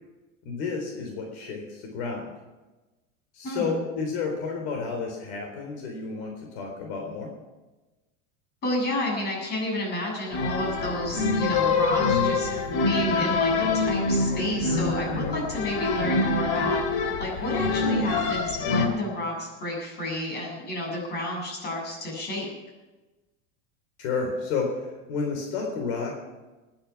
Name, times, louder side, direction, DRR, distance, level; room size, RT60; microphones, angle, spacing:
voice 1, 0.4-2.3 3.3-7.3 24.0-26.1, left 4 dB, 70° left, 2 dB, 3.9 m, -31 dB
voice 2, 3.4-3.8 8.6-16.8 17.2-22.5, left 1 dB, 30° left, -1 dB, 7.4 m, -31 dB
sound 1, 10.3-18.9, left 3 dB, 85° left, 2.7 m, -25 dB
20.5 x 10.5 x 6.0 m, 1.1 s
supercardioid pair, 155°, 34 cm